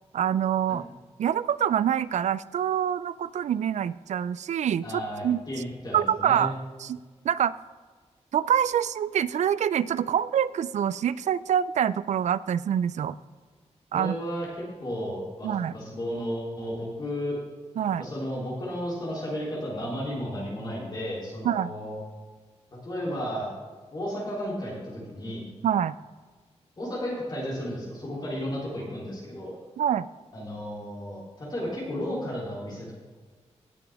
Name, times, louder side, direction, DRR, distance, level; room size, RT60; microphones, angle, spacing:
voice 1, 0.1-0.9 1.2-5.4 5.9-6.5 6.8-7.0 7.2-7.6 8.3-13.2 13.9-14.2 15.4-15.7 17.8-18.1 21.4-21.7 25.6-26.0 29.8-30.1, right 9 dB, 85° right, 17 dB, 0.4 m, -25 dB
voice 2, 4.8-6.5 13.9-14.5 14.8-17.4 18.0-22.0 22.8-23.5 23.9-25.5 26.8-29.5 30.3-32.9, equal, 35° left, -6 dB, 3.3 m, -33 dB
17.5 x 7.0 x 3.5 m, 1.5 s
wide cardioid pair, 170°, 12 cm